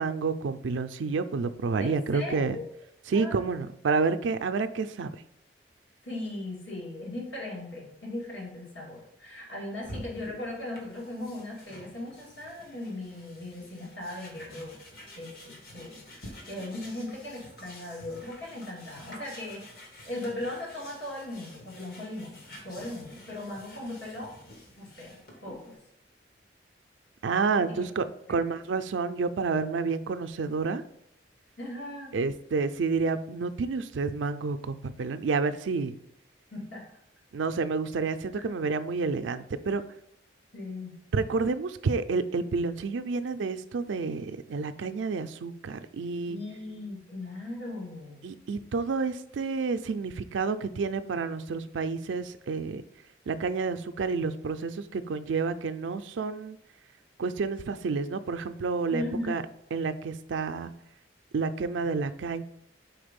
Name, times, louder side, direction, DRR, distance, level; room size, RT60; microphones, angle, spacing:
voice 1, 0.0-2.6 3.1-5.2 27.2-30.8 32.1-36.0 37.3-39.8 41.1-46.4 48.2-52.8 53.3-56.6 57.2-59.4 59.7-60.7 61.3-62.4, right 4 dB, 90° right, 10 dB, 0.4 m, -29 dB
voice 2, 1.8-2.6 3.1-3.4 6.0-14.8 15.2-19.6 20.1-22.4 22.6-24.3 24.8-25.8 27.6-27.9 28.3-28.5 31.6-32.1 36.5-36.8 38.4-38.5 40.5-41.0 46.3-48.2 58.9-59.4, left 1 dB, 80° left, -4 dB, 2.2 m, -38 dB
sound 1, 9.8-25.7, left 1 dB, 55° left, 1.2 m, -49 dB
4.7 x 3.9 x 5.1 m, 0.75 s
head